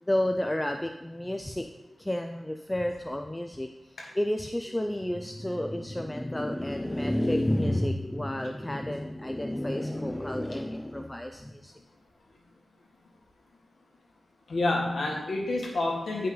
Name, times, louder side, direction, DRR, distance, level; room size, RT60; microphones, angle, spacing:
voice 1, 0.0-1.7 2.0-11.7, left 1 dB, 10° left, 5 dB, 0.4 m, -30 dB
voice 2, 14.5-16.3, left 2 dB, 85° left, -1 dB, 1.7 m, -28 dB
9.3 x 5.4 x 3.9 m, 0.98 s
wide cardioid pair, 125°, 0 cm